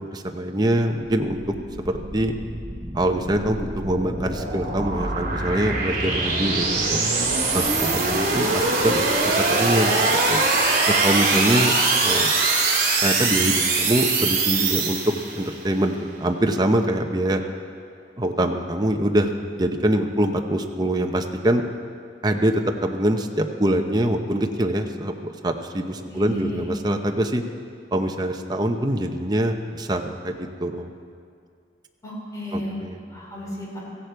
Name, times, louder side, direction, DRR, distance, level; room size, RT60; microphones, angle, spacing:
voice 1, 0.0-2.3 2.9-7.0 7.5-10.4 10.9-11.7 12.0-12.3 13.0-17.4 18.2-21.6 22.2-27.4 27.9-30.9 32.5-33.0, right 1 dB, 25° right, 4 dB, 0.8 m, -24 dB
sound 1, 1.4-15.5, right 3 dB, 55° right, 3.1 m, -23 dB
voice 2, 26.1-26.7 32.0-32.7 33.1-33.8, equal, 20° left, -5 dB, 4.5 m, -33 dB
17.0 x 15.0 x 4.6 m, 2.3 s
head